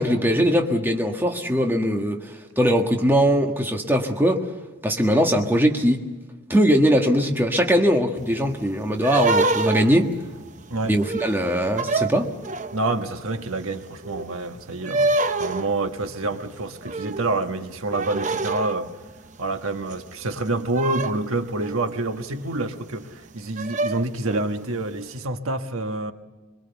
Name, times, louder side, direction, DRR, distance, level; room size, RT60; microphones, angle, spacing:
voice 1, 0.0-4.5 4.8-6.0 6.5-10.1 10.8-12.3, equal, 10° right, 1.6 m, -21 dB
sound 1, 8.2-13.0 13.4-20.1 20.5-22.1 22.6-22.7 23.1-23.2 23.6-24.7, right 3 dB, 35° right, 0.7 m, -27 dB
voice 2, 12.7-18.9 19.4-26.1, right 2 dB, 75° right, 1.4 m, -27 dB
23.5 x 22.5 x 7.0 m
head